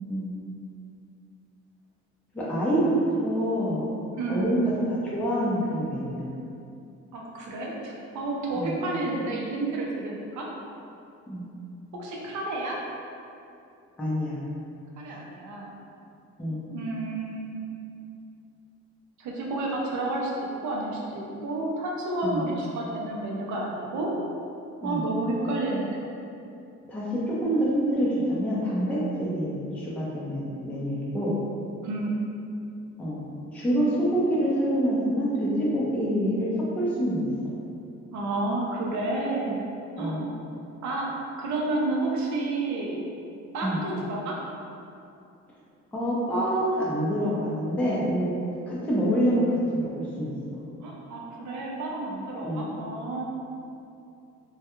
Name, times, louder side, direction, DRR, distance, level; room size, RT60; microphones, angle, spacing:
voice 1, 2.3-3.8 4.3-4.6 4.9-6.2 8.6-8.7 11.3-11.5 14.0-14.4 16.4-16.6 22.2-22.4 24.8-25.0 26.9-31.3 33.0-33.2 33.5-37.2 40.0-40.3 43.6-43.8 45.9-48.3 48.7-49.9 50.2-50.3 52.4-52.6, equal, 5° left, -7 dB, 0.5 m, -26 dB
voice 2, 4.1-4.6 7.1-10.5 12.0-12.8 15.0-15.7 16.7-17.7 19.2-24.1 24.8-25.8 31.8-32.2 38.1-39.6 40.0-40.2 40.8-41.1 41.4-43.0 43.5-44.4 50.8-53.2, right 2 dB, 70° right, -2 dB, 0.6 m, -30 dB
2.2 x 2.2 x 2.9 m, 2.6 s
cardioid pair, 90°, 30 cm